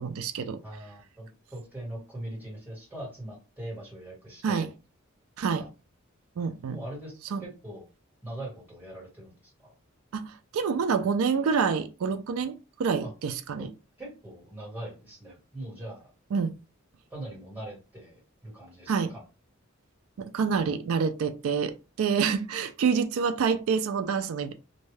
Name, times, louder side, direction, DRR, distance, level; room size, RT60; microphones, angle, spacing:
voice 1, 0.0-0.6 4.4-4.7 5.4-5.7 6.4-6.8 7.3-7.4 10.1-13.7 16.3-16.5 18.9-19.1 20.2-24.5, right 6 dB, 85° right, 0.4 m, -27 dB
voice 2, 0.6-4.7 5.5-5.7 6.6-7.9 8.2-9.7 13.0-13.1 13.6-13.7 14.0-16.1 17.1-19.2, right 1 dB, 10° right, 1.6 m, -41 dB
2.6 x 2.2 x 3.2 m
head